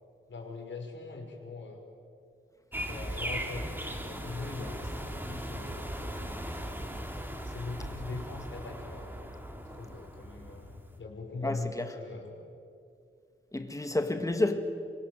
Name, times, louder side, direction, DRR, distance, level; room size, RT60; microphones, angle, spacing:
voice 1, 0.3-1.8 2.9-6.2 7.5-9.3 9.7-12.3, left 3 dB, 65° left, 5.5 m, -41 dB
sound 1, 2.7-11.0, equal, 10° right, 2.8 m, -38 dB
voice 2, 11.4-11.8 13.5-14.6, left 2 dB, 15° left, 1.9 m, -29 dB
28.0 x 24.5 x 7.9 m
wide cardioid pair, 150°, 21 cm